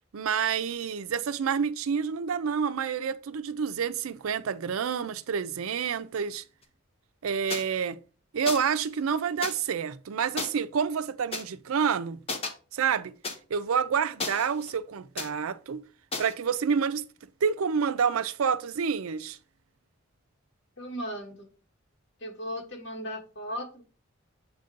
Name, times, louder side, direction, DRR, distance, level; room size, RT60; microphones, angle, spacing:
voice 1, 0.1-6.4 7.2-8.0 8.3-12.2 12.7-13.1 13.5-15.8 16.2-17.1 17.4-19.4, right 6 dB, 85° right, 0.4 m, -28 dB
sound 1, 7.5-7.6 8.5-8.8 9.4-9.5 10.4-10.5 11.3-11.4 12.3-12.5 13.2-13.4 14.2-14.7 15.2-15.3 16.1-16.3, left 3 dB, 30° left, 1.0 m, -33 dB
voice 2, 20.8-21.5 22.2-23.8, equal, 60° left, 2.6 m, -36 dB
7.5 x 2.6 x 5.1 m
head